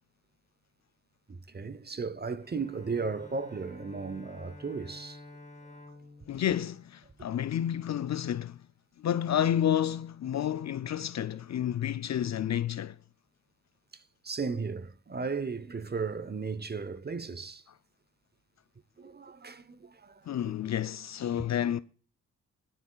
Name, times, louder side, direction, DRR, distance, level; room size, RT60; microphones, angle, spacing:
voice 1, 1.3-5.2 13.9-17.6 19.0-20.3 21.4-21.5, right 4 dB, 25° right, 0.8 m, -35 dB
Bowed string instrument, 2.4-7.6, left 2 dB, 20° left, 2.2 m, -51 dB
voice 2, 6.3-8.6 9.0-13.0 20.3-21.8, left 10 dB, 45° left, 0.5 m, -30 dB
17.0 x 11.0 x 2.4 m
hypercardioid pair, 40°, 37 cm